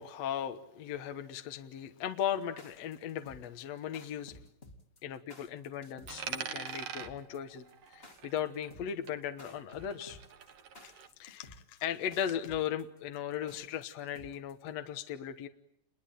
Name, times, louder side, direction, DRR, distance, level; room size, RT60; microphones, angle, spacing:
voice 1, 0.0-4.4 5.0-10.2 10.8-10.9 11.2-15.5, left 9 dB, 60° left, 8 dB, 2.0 m, -37 dB
sound 1, 2.4-14.7, left 2 dB, 20° left, 2.1 m, -54 dB
Coin (dropping), 6.1-8.8 9.1-11.1, right 7 dB, 55° right, 2.2 m, -44 dB
29.5 x 22.0 x 9.1 m, 0.73 s
omnidirectional pair, 3.9 m